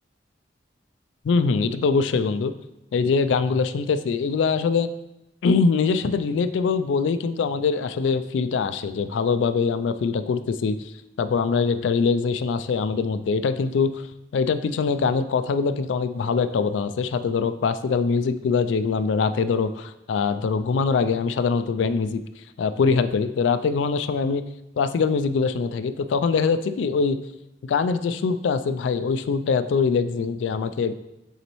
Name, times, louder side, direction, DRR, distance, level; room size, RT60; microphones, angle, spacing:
voice 1, 1.2-2.5 2.9-4.9 5.4-10.8 11.2-14.1 14.3-22.2 22.6-24.4 24.8-27.2 27.6-30.9, left 5 dB, 90° left, 11 dB, 0.3 m, -23 dB
8.1 x 4.0 x 3.0 m, 0.90 s
head